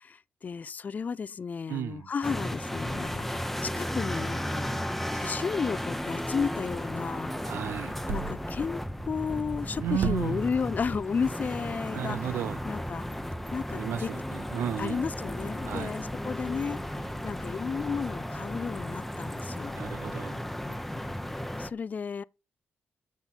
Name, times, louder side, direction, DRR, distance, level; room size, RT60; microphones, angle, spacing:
voice 1, 0.0-4.7 5.1-7.3 8.1-12.3 12.6-13.0 13.5-14.1 14.8-16.8 17.2-19.8 21.6-22.2, left 5 dB, 45° left, 0.5 m, -33 dB
voice 2, 1.7-2.1 7.4-8.0 9.8-10.5 11.9-12.6 13.7-15.0 15.6-15.9 19.8-20.4, right 11 dB, 90° right, 0.5 m, -34 dB
sound 1, 2.2-21.7, equal, 5° left, 0.9 m, -35 dB
sound 2, 2.2-15.0, right 5 dB, 70° right, 2.0 m, -45 dB
sound 3, 6.9-17.2, right 2 dB, 25° right, 0.5 m, -46 dB
8.0 x 7.3 x 6.1 m
cardioid pair, 90°, 4 cm